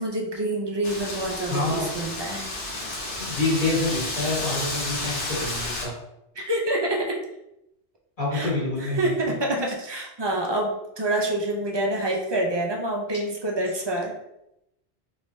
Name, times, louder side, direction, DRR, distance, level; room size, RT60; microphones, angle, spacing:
voice 1, 0.0-2.5 6.4-7.2 8.3-8.5 8.8-14.2, right 1 dB, 40° right, -1 dB, 0.4 m, -27 dB
Wind, 0.8-5.9, left 2 dB, 85° left, 1.1 m, -31 dB
voice 2, 1.5-1.9 3.2-5.9 8.2-9.3, left 2 dB, 45° left, -8 dB, 1.5 m, -27 dB
3.4 x 3.1 x 2.6 m, 0.85 s
omnidirectional pair, 1.2 m